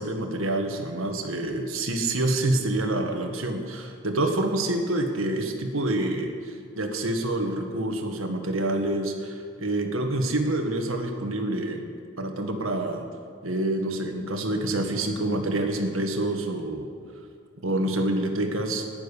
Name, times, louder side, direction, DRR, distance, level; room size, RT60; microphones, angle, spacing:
voice 1, 0.0-11.9 12.2-13.0 13.4-16.9 17.6-18.8, right 1 dB, 80° right, 4 dB, 1.7 m, -27 dB
12.0 x 9.3 x 10.0 m, 2.2 s
head